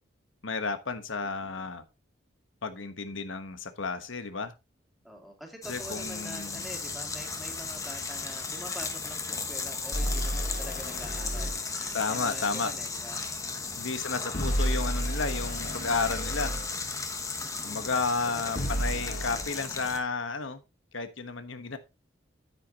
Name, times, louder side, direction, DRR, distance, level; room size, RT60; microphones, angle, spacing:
voice 1, 0.4-1.8 2.6-4.5 5.7-6.7 11.9-12.7 13.8-16.5 17.6-20.6 20.9-21.8, left 4 dB, 90° left, 1.2 m, -32 dB
voice 2, 1.2-1.7 5.0-13.8 17.4-17.9 18.2-18.5, equal, ahead, 2.4 m, -46 dB
sound 1, 5.6-20.0, left 4 dB, 15° left, 1.1 m, -36 dB
sound 2, 9.9-11.6 14.3-16.7 18.5-19.4, equal, 45° left, 1.2 m, -31 dB
9.3 x 9.2 x 2.9 m
head